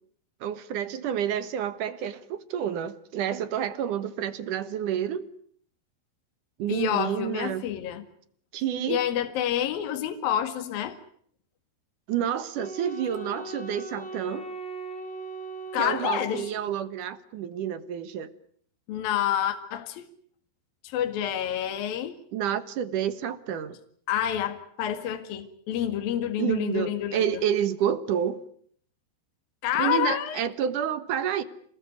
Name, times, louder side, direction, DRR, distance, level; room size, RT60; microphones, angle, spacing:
voice 1, 0.4-5.3 6.6-7.6 8.5-9.0 12.1-14.5 15.8-18.3 22.3-23.8 26.4-28.4 29.8-31.4, right 9 dB, 60° right, 13 dB, 2.3 m, -29 dB
voice 2, 6.7-8.0 8.9-11.0 15.7-16.5 18.9-20.1 20.8-22.2 24.1-27.4 29.6-30.4, left 10 dB, 60° left, 7 dB, 3.5 m, -28 dB
Wind instrument woodwind instrument, 12.6-17.0, right 2 dB, 35° left, 2.4 m, -39 dB
29.0 x 19.5 x 9.5 m, 0.63 s
omnidirectional pair, 4.9 m